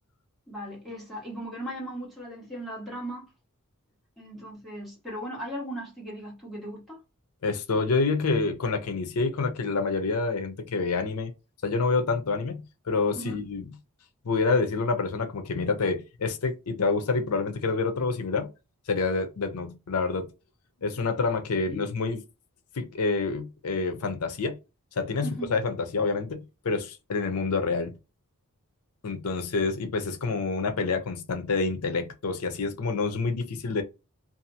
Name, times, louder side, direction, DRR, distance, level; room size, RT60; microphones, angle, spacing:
voice 1, 0.5-3.3 4.2-7.0 13.1-13.4 21.7-21.8 25.2-25.6, right 1 dB, ahead, 1.5 m, -37 dB
voice 2, 7.4-11.3 11.6-13.7 14.2-18.5 18.9-20.3 20.8-22.2 22.7-24.6 25.0-28.0 29.0-33.8, left 4 dB, 80° left, 0.6 m, -27 dB
2.7 x 2.4 x 2.7 m
head